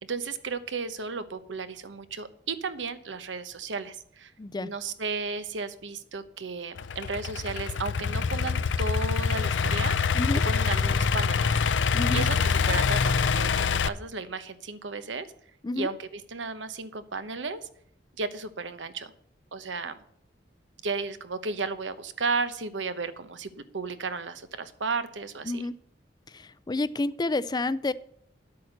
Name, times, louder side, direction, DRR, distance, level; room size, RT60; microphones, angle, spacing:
voice 1, 0.0-4.3 4.6-10.2 10.4-11.6 12.1-15.3 15.8-17.6 18.2-19.1 19.5-20.0 20.8-25.6, right 4 dB, 85° right, 12 dB, 1.0 m, -34 dB
voice 2, 4.4-4.7 10.1-10.4 11.9-12.2 15.6-15.9 25.5-25.7 26.3-27.9, left 2 dB, 25° left, 17 dB, 0.4 m, -29 dB
Idling / Accelerating revving vroom, 6.8-13.9, left 5 dB, 75° left, 0.5 m, -25 dB
10.5 x 8.6 x 6.5 m, 0.66 s
head